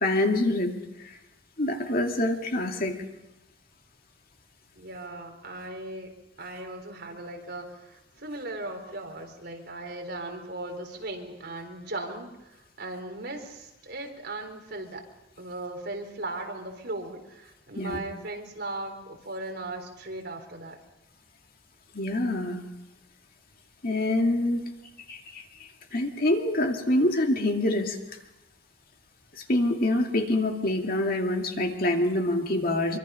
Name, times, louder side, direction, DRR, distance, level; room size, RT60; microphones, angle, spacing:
voice 1, 0.0-0.7 1.0-1.2 1.6-3.0 17.8-18.0 21.9-22.6 23.8-24.7 25.1-28.0 29.3-33.0, left 1 dB, 50° left, 3 dB, 2.3 m, -26 dB
voice 2, 4.8-6.1 6.4-15.0 15.4-20.8, right 2 dB, 55° right, 3 dB, 3.9 m, -38 dB
25.0 x 24.0 x 5.7 m, 0.96 s
head